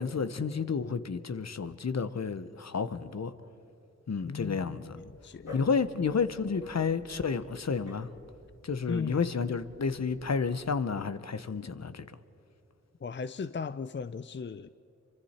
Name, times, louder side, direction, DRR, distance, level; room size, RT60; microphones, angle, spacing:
voice 1, 0.0-3.3 4.1-5.0 5.5-8.1 8.6-12.1, left 5 dB, 60° left, 1.0 m, -31 dB
voice 2, 4.2-5.5 8.9-9.6 13.0-14.7, left 5 dB, 40° left, 0.5 m, -37 dB
Dog, 4.9-10.8, left 2 dB, 80° left, 2.8 m, -52 dB
28.0 x 24.5 x 4.4 m
cardioid pair, 45°, 30 cm